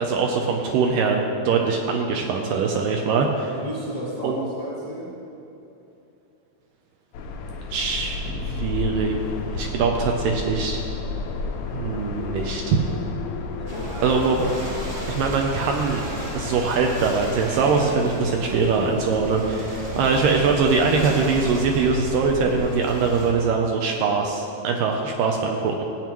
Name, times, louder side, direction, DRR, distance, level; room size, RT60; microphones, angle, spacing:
voice 1, 0.0-3.5 4.2-4.5 7.7-9.2 9.5-10.8 11.7-12.8 14.0-14.8 15.1-16.1 16.4-25.8, right 4 dB, 80° right, 2 dB, 2.1 m, -22 dB
voice 2, 3.5-5.2 13.5-13.9 19.7-20.0, equal, 50° left, -7 dB, 1.4 m, -33 dB
sound 1, 7.1-22.7, left 4 dB, 80° left, 2.5 m, -33 dB
Ocean / Boat Water vehicle, 13.7-23.3, equal, 40° right, 0.8 m, -35 dB
15.0 x 8.7 x 3.0 m, 2.8 s
omnidirectional pair, 4.3 m